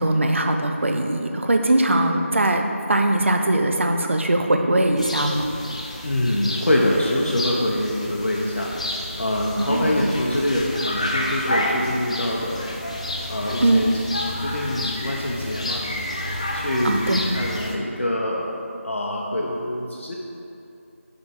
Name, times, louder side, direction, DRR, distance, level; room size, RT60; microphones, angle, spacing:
voice 1, 0.0-2.6 2.9-5.5 9.6-10.0 13.6-13.9 16.8-17.2, right 1 dB, 60° right, 4 dB, 0.6 m, -21 dB
sound 1, 5.0-17.8, left 1 dB, 25° left, 0.4 m, -30 dB
voice 2, 6.0-8.7 9.2-12.7 13.3-13.9 14.3-15.8 16.5-18.6 18.8-20.1, left 1 dB, 65° left, -3 dB, 0.7 m, -24 dB
6.5 x 3.5 x 4.4 m, 2.8 s
figure-of-eight pair, 170°, 7 cm